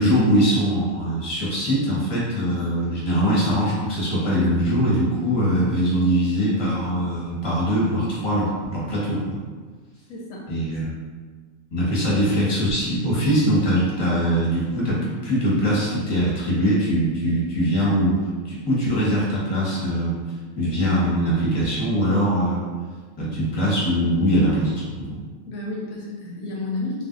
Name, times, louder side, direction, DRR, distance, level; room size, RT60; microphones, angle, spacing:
voice 1, 0.0-9.4 10.5-10.8 11.7-20.2 20.6-22.6 23.2-25.2, equal, 20° left, -7 dB, 0.8 m, -22 dB
voice 2, 10.1-10.5 25.5-27.1, left 2 dB, 75° left, -3 dB, 0.9 m, -31 dB
2.5 x 2.2 x 3.7 m, 1.5 s
omnidirectional pair, 1.5 m